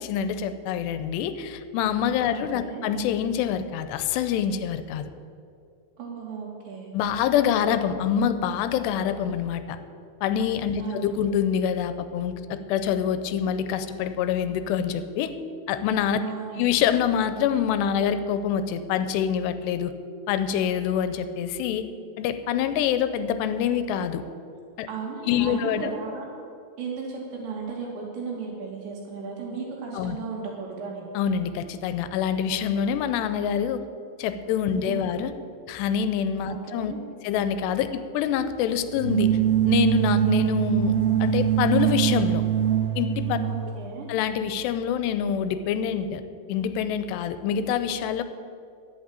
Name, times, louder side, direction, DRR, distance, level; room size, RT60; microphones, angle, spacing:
voice 1, 0.0-5.1 6.9-9.8 10.2-15.4 15.7-16.2 16.6-19.9 20.3-21.9 22.2-24.2 24.8-24.9 25.3-25.9 29.9-30.2 31.2-33.8 34.2-35.3 35.7-36.9 37.2-39.4 39.7-42.4 43.0-43.4 44.1-46.2 46.5-48.2, left 8 dB, 85° left, 11 dB, 2.8 m, -26 dB
voice 2, 2.3-2.8 6.0-6.9 10.8-11.1 16.2-16.7 24.9-26.3 26.8-31.0 34.8-35.2 36.5-37.0 43.4-44.1, right 5 dB, 85° right, -2 dB, 4.8 m, -35 dB
sound 1, 38.9-43.7, right 10 dB, 65° right, 2.8 m, -23 dB
11.0 x 8.3 x 8.8 m, 2.4 s
omnidirectional pair, 4.9 m